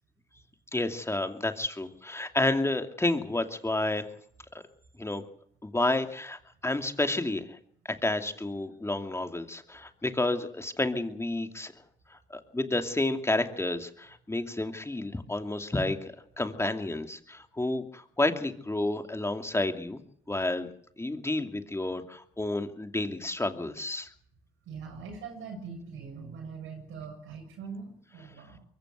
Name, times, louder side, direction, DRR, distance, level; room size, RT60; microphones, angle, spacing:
voice 1, 0.7-4.1 4.5-4.6 5.0-5.2 5.6-7.6 8.0-11.7 12.3-20.0 20.3-20.7 21.0-24.1, left 2 dB, 15° left, 6 dB, 2.6 m, -30 dB
voice 2, 24.7-28.6, right 5 dB, 85° right, 1 dB, 7.3 m, -42 dB
22.5 x 16.0 x 8.2 m, 0.63 s
cardioid pair, 90°, 20 cm